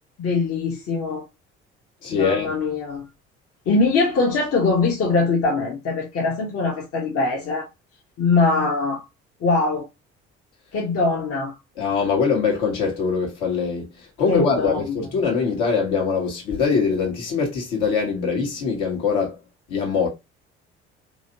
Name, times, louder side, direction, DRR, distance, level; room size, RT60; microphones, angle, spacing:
voice 1, 0.2-1.3 2.1-3.1 3.7-7.7 8.2-9.0 9.4-9.9 10.7-11.5 14.3-14.9, left 3 dB, 45° left, 1.1 m, -22 dB
voice 2, 2.0-2.5 11.8-13.9 14.2-19.4 19.7-20.1, left 5 dB, 65° left, 1.5 m, -22 dB
3.1 x 2.9 x 2.7 m
figure-of-eight pair, 50°, 34 cm